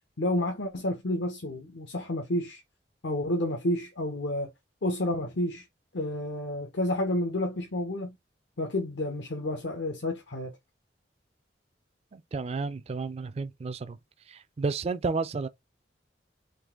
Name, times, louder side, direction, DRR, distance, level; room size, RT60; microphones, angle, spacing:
voice 1, 0.2-2.6 3.0-4.5 4.8-5.6 5.9-8.1 8.6-10.5, left 1 dB, 85° left, 0.9 m, -30 dB
voice 2, 12.1-14.0 14.6-15.5, right 4 dB, 35° right, 0.3 m, -31 dB
3.9 x 2.5 x 3.5 m
head